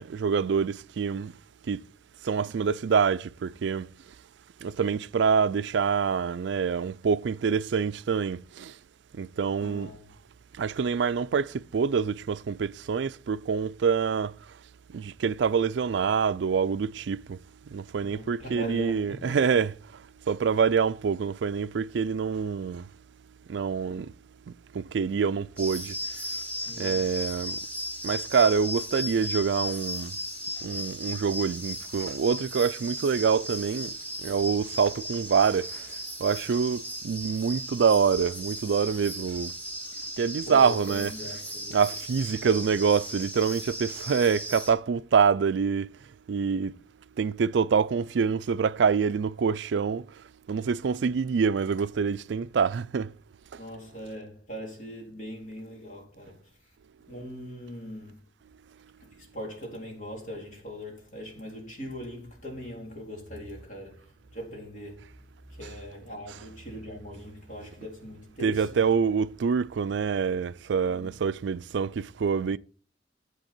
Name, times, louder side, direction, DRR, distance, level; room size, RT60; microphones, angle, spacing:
voice 1, 0.0-1.3 1.7-1.8 2.2-3.9 4.6-8.7 9.2-9.9 10.6-14.3 14.9-17.4 17.7-19.7 20.3-22.9 23.5-24.1 24.7-26.0 26.8-27.6 28.0-30.1 30.6-33.9 34.2-35.8 36.2-39.5 40.2-41.1 41.7-45.9 46.3-46.7 47.2-50.0 50.5-53.1 68.4-72.6, right 6 dB, 70° right, 0.4 m, -26 dB
voice 2, 9.6-10.1 18.0-19.4 26.7-27.1 40.4-41.8 42.4-42.7 53.6-56.5 57.1-58.2 59.1-68.9 70.9-71.1, equal, 45° left, 3.8 m, -41 dB
sound 1, 25.6-44.7, equal, 10° left, 2.3 m, -36 dB
10.5 x 7.9 x 4.4 m
head